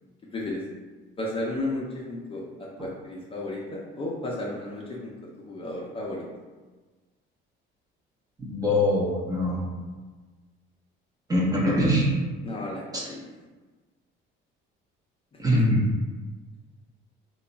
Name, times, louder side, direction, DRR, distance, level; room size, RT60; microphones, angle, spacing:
voice 1, 0.3-0.6 1.2-5.1 5.4-6.2 12.4-12.8 13.1-13.2 15.5-15.6, left 2 dB, 25° left, -3 dB, 0.5 m, -33 dB
voice 2, 8.4-9.7 11.3-12.1 12.9-13.1 15.4-15.8, left 1 dB, 15° right, -3 dB, 0.7 m, -23 dB
3.0 x 2.3 x 3.8 m, 1.3 s
cardioid pair, 130°, 21 cm